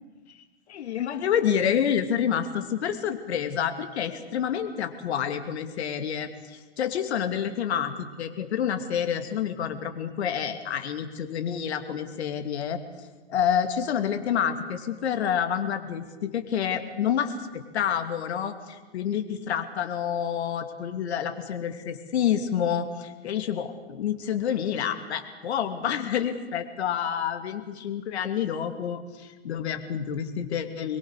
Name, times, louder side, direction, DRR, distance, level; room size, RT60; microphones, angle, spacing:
voice 1, 0.7-12.8 13.3-31.0, left 8 dB, 70° left, 6 dB, 2.8 m, -28 dB
26.0 x 22.5 x 6.7 m, 1.3 s
hypercardioid pair, 115°, 34 cm